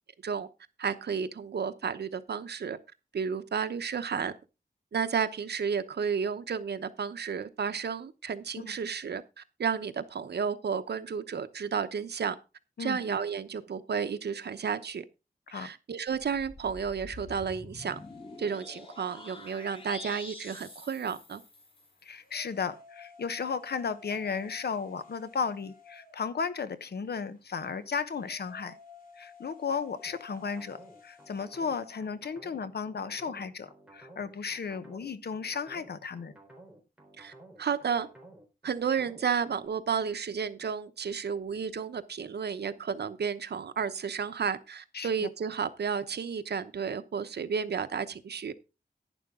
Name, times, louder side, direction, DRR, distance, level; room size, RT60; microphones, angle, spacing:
voice 1, 0.8-2.8 3.1-4.3 4.9-12.4 12.8-15.0 15.5-18.0 18.4-21.4 37.2-38.1 38.6-48.5, right 6 dB, 90° right, 0.9 m, -32 dB
sound 1, 16.1-21.9, left 2 dB, 30° left, 2.1 m, -47 dB
sound 2, 17.8-32.2, left 5 dB, 60° left, 4.3 m, -55 dB
voice 2, 22.0-28.8 29.2-30.8 31.0-36.3 44.9-45.3, left 5 dB, 80° left, 1.0 m, -34 dB
sound 3, 30.0-39.7, right 2 dB, 5° right, 4.0 m, -54 dB
11.0 x 10.0 x 3.7 m
wide cardioid pair, 105°, 17 cm